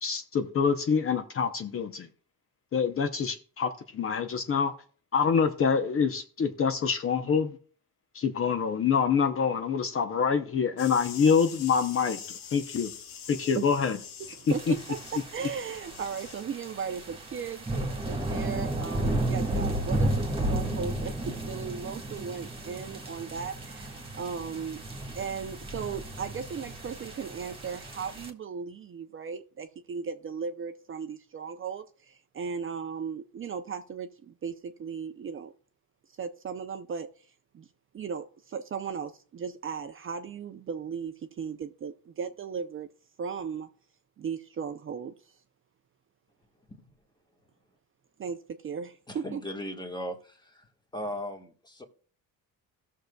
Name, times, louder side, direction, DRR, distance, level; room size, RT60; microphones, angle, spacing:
voice 1, 0.0-2.1 2.7-4.7 5.1-7.6 8.1-12.9 13.3-14.0 14.7-14.8, left 6 dB, 40° left, 0.7 m, -26 dB
sound 1, 10.8-16.4, left 7 dB, 65° left, 1.2 m, -44 dB
voice 2, 14.2-24.8 25.2-35.5 36.2-37.1 37.5-37.7 37.9-42.9 43.2-43.7 44.2-45.3 48.2-49.4, right 6 dB, 35° right, 0.6 m, -37 dB
sound 2, 14.5-28.3, right 1 dB, 15° right, 1.6 m, -33 dB
voice 3, 49.1-50.7 50.9-51.8, equal, 10° left, 1.4 m, -37 dB
17.0 x 6.5 x 2.3 m
cardioid pair, 125°, 36 cm